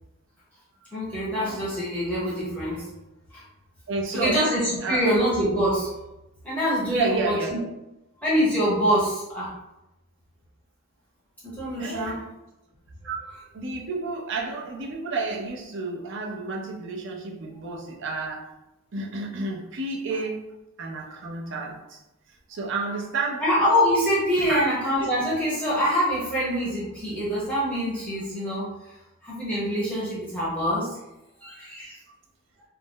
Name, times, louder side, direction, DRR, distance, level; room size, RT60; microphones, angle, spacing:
voice 1, 0.9-2.9 3.3-3.4 4.1-5.9 6.4-7.3 8.2-9.5 11.4-12.2 23.4-28.7 29.2-31.0 31.4-32.0, equal, 5° left, -9 dB, 0.7 m, -25 dB
voice 2, 3.9-4.5 4.8-5.1 6.9-7.7 11.8-12.3 13.0-18.6 18.9-20.5 20.8-22.0 22.5-23.4 24.4-24.6, right 3 dB, 60° right, -1 dB, 0.5 m, -31 dB
2.5 x 2.0 x 3.6 m, 0.93 s
head